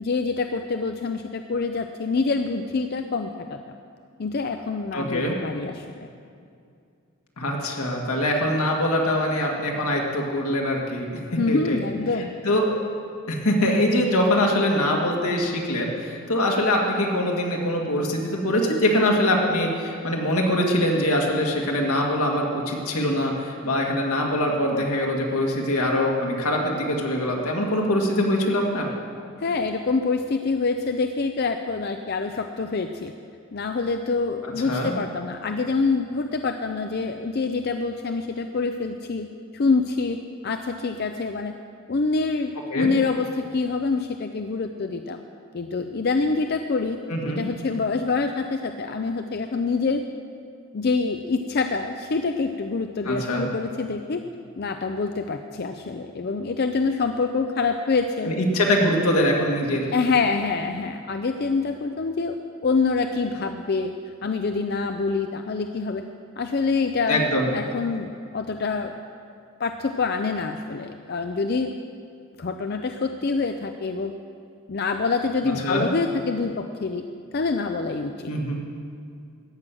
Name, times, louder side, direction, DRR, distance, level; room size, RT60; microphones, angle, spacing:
voice 1, 0.0-3.7 4.2-6.1 11.4-12.3 29.4-33.1 33.5-39.3 39.5-40.2 40.4-41.5 41.9-45.2 45.5-47.0 47.3-50.0 50.7-54.2 54.6-58.3 59.9-62.4 62.6-63.9 64.2-66.0 66.4-68.9 69.6-71.7 72.4-74.1 74.7-77.0 77.3-78.3, left 4 dB, 45° left, 6 dB, 0.4 m, -26 dB
voice 2, 4.9-5.4 7.4-11.2 11.5-11.8 12.4-12.7 13.3-28.9 34.6-34.9 42.7-42.9 47.1-47.4 53.1-53.5 58.2-59.9 67.1-67.5 75.4-75.9 78.3-78.6, left 1 dB, 80° left, 0 dB, 2.0 m, -23 dB
14.0 x 6.1 x 9.1 m, 2.4 s
head